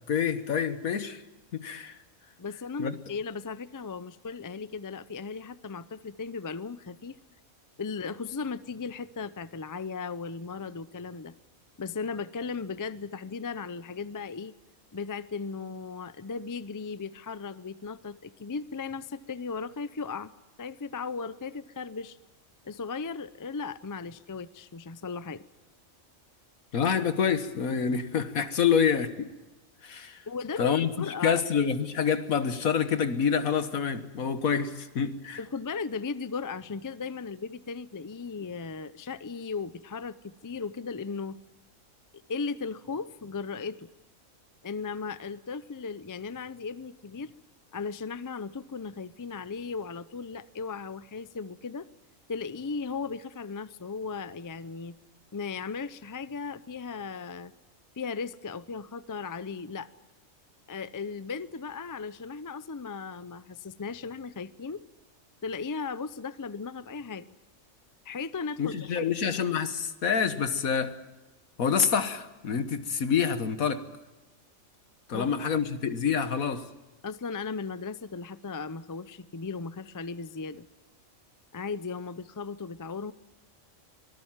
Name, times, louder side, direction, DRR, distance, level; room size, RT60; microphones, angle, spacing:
voice 1, 0.1-1.2 1.5-2.0 2.8-3.0 26.7-29.3 29.8-30.2 30.6-30.9 31.2-35.4 68.6-71.0 71.6-73.9 75.1-76.7, left 7 dB, 80° left, 1.7 m, -27 dB
voice 2, 2.4-7.2 7.8-11.3 11.8-14.5 14.9-20.3 20.6-22.2 22.6-25.4 30.3-31.4 35.4-41.4 42.3-43.9 44.6-47.3 47.7-51.9 52.3-55.0 55.3-57.5 58.0-59.9 60.7-64.8 65.4-67.4 68.0-69.1 75.1-75.6 77.0-80.7 81.5-83.1, left 5 dB, 30° left, 0.3 m, -36 dB
24.5 x 19.0 x 7.3 m
omnidirectional pair, 1.4 m